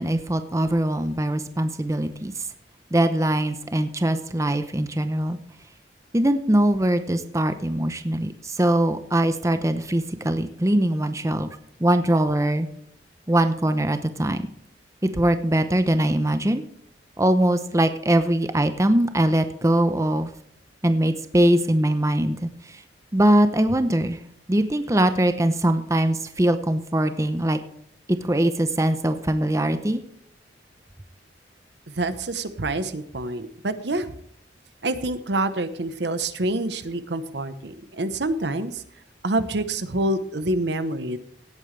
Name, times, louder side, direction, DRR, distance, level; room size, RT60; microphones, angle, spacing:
voice 1, 0.0-2.5 2.9-5.4 6.1-11.5 11.8-12.7 13.3-14.4 15.0-16.6 17.2-20.3 20.8-22.8 23.1-24.2 24.5-27.6 28.1-30.0, right 1 dB, 15° right, 9 dB, 0.7 m, -22 dB
voice 2, 31.9-34.1 34.8-38.8 39.2-41.2, right 2 dB, 65° right, 12 dB, 1.0 m, -27 dB
17.0 x 8.9 x 3.3 m, 0.68 s
head